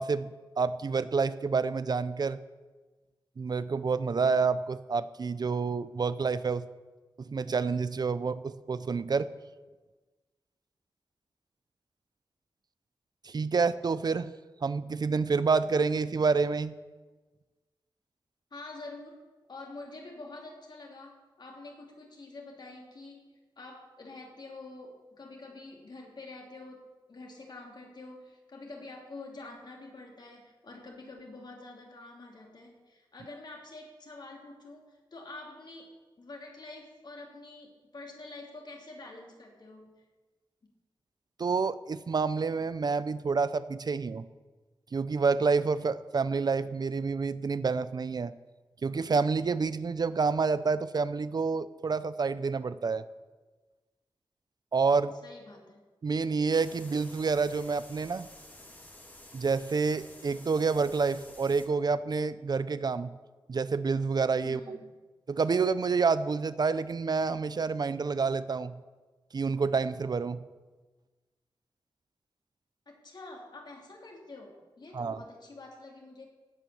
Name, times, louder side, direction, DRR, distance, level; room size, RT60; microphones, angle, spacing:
voice 1, 0.0-2.4 3.4-6.7 7.2-9.3 13.2-14.3 14.6-16.7 41.4-44.3 44.9-48.3 48.8-53.0 54.7-55.1 56.0-58.3 59.3-63.1 63.5-64.8 65.3-68.8 69.3-70.4 74.9-75.2, right 4 dB, 50° right, 14 dB, 0.5 m, -28 dB
voice 2, 18.5-19.2 19.5-40.0 40.6-40.7 55.2-55.8 64.4-64.9 72.9-76.3, left 2 dB, 55° left, 0 dB, 3.2 m, -47 dB
sound 1, 56.5-61.7, left 1 dB, 20° left, 2.1 m, -51 dB
16.5 x 9.0 x 7.1 m, 1.3 s
wide cardioid pair, 130°, 9 cm